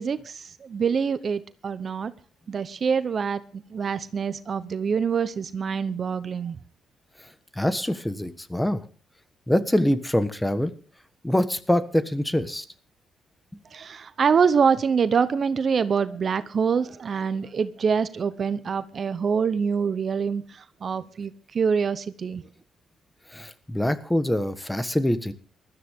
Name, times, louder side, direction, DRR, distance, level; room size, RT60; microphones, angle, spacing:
voice 1, 0.0-2.1 2.5-6.6 13.7-22.4, right 6 dB, 45° right, 14 dB, 0.8 m, -25 dB
voice 2, 7.5-8.8 9.5-10.7 11.2-12.6 23.3-25.3, left 1 dB, 5° left, 13 dB, 1.3 m, -24 dB
19.5 x 13.0 x 3.7 m, 0.37 s
cardioid pair, 90°, 0 cm